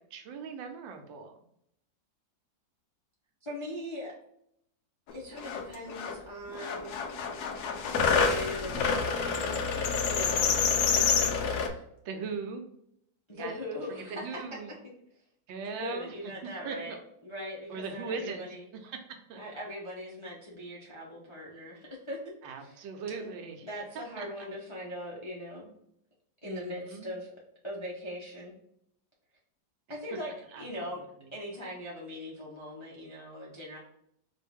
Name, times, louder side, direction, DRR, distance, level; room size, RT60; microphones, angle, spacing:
voice 1, 0.1-1.4 10.3-10.8 12.0-12.6 13.3-13.5 14.1-14.7 15.5-16.1 16.6-17.0 17.7-18.4 18.8-19.0 19.3-19.4 22.4-23.7 23.9-24.3 26.4-27.1 30.5-30.6 31.2-31.3, right 5 dB, 85° right, 5 dB, 1.4 m, -39 dB
voice 2, 3.4-4.1 5.1-7.0 7.9-9.6 10.0-10.6 10.9-11.8 13.3-14.4 15.6-18.6 19.4-22.2 22.6-23.3 23.6-25.7 26.4-27.3 27.6-28.5 29.9-31.0 31.3-33.8, left 1 dB, 40° left, -5 dB, 0.4 m, -40 dB
sound 1, 5.1-5.2 5.4-6.2 6.5-11.7, left 6 dB, 70° left, 1.0 m, -28 dB
4.4 x 2.5 x 3.4 m, 0.73 s
omnidirectional pair, 2.0 m